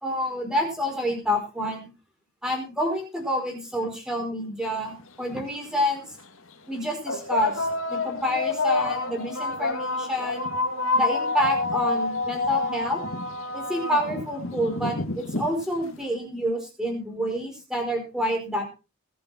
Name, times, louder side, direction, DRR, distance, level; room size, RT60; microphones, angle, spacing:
voice 1, 0.0-1.9 2.4-6.2 6.7-10.5 10.9-13.0 13.5-18.6, equal, 5° right, 1 dB, 4.7 m, -28 dB
sound 1, 5.0-5.1 6.0-6.2 7.1-16.0, left 2 dB, 65° left, 2.0 m, -28 dB
21.0 x 7.2 x 4.3 m, 0.31 s
head